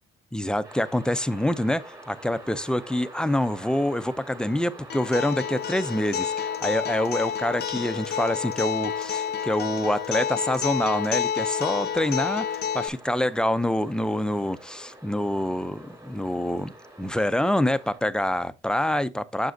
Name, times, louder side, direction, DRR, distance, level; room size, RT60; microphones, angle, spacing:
voice 1, 0.3-16.7 17.0-19.5, left 1 dB, 5° left, 0.5 m, -26 dB
sound 1, 0.6-18.0, right 1 dB, 20° right, 3.1 m, -46 dB
Acoustic guitar, 4.9-12.9, left 8 dB, 55° left, 0.7 m, -29 dB
7.5 x 6.1 x 2.6 m
cardioid pair, 90°, 20 cm